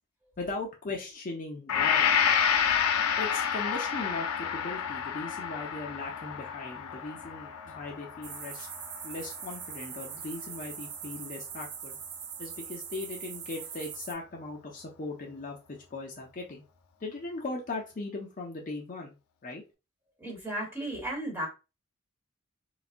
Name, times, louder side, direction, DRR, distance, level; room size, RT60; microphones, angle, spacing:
voice 1, 0.4-2.1 3.2-8.7 9.0-12.0 12.4-16.6 17.0-19.2 19.4-19.6, left 2 dB, 40° left, -1 dB, 0.5 m, -39 dB
Gong, 1.7-9.7, left 7 dB, 90° left, 0.5 m, -29 dB
sound 1, 8.2-14.1, right 8 dB, 80° right, 0.5 m, -42 dB
voice 2, 20.2-21.5, right 1 dB, 10° right, -1 dB, 1.3 m, -34 dB
3.9 x 2.2 x 2.5 m, 0.29 s
head